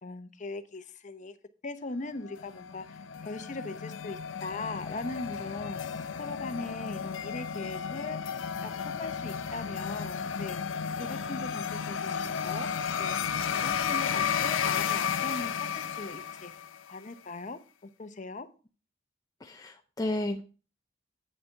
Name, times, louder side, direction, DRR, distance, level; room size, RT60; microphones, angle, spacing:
voice 1, 0.0-1.3 1.6-5.8 6.2-8.3 8.6-10.6 11.0-12.7 13.0-13.2 13.5-16.5 16.9-17.6 18.0-18.5, left 3 dB, 40° left, 10 dB, 0.8 m, -39 dB
sound 1, 2.2-16.9, left 7 dB, 85° left, 0.6 m, -33 dB
voice 2, 19.4-20.4, left 1 dB, 20° left, 4 dB, 0.5 m, -32 dB
8.6 x 6.7 x 4.6 m, 0.36 s
head